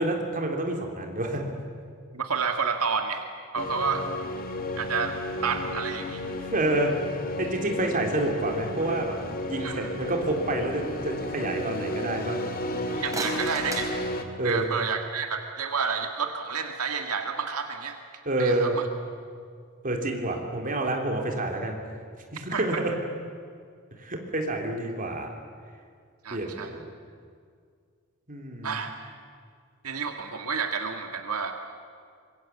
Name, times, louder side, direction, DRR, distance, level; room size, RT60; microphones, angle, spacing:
voice 1, 0.0-1.5 6.5-7.0 7.4-9.2 9.4-12.4 14.4-14.7 18.3-18.8 19.8-21.8 22.3-22.9 24.0-25.3 26.3-26.9 28.3-28.8, right 1 dB, 40° right, 2 dB, 3.4 m, -28 dB
voice 2, 2.1-3.2 3.5-4.0 4.8-5.2 5.4-6.2 9.6-9.9 12.9-14.1 14.4-18.0 18.4-18.9 22.5-22.8 26.2-26.7 28.6-28.9 29.8-31.5, right 5 dB, 85° right, 5 dB, 1.8 m, -30 dB
sound 1, 3.6-14.2, left 1 dB, 40° left, 2.0 m, -33 dB
sound 2, 12.9-14.8, right 2 dB, 15° right, 3.9 m, -37 dB
25.0 x 22.0 x 8.5 m, 2.1 s
head